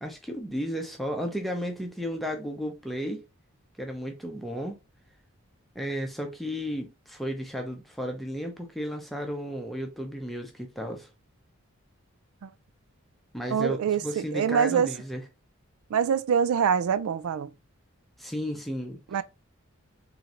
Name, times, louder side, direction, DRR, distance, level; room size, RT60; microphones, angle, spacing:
voice 1, 0.0-3.2 3.8-4.8 5.7-11.1 13.3-15.2 18.2-19.2, equal, ahead, 0.7 m, -34 dB
voice 2, 13.5-14.9 15.9-17.5 19.1-19.2, right 7 dB, 80° right, 0.3 m, -25 dB
3.8 x 3.2 x 2.9 m
head